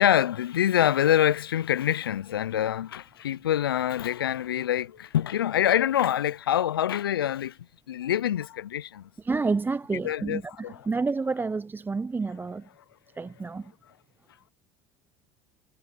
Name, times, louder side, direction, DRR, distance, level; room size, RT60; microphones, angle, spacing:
voice 1, 0.0-7.6 7.9-9.1 9.9-10.9, left 11 dB, 90° left, 0.5 m, -25 dB
voice 2, 9.2-12.6 13.2-13.6, right 4 dB, 15° right, 0.7 m, -29 dB
hypercardioid pair, 70°, 12 cm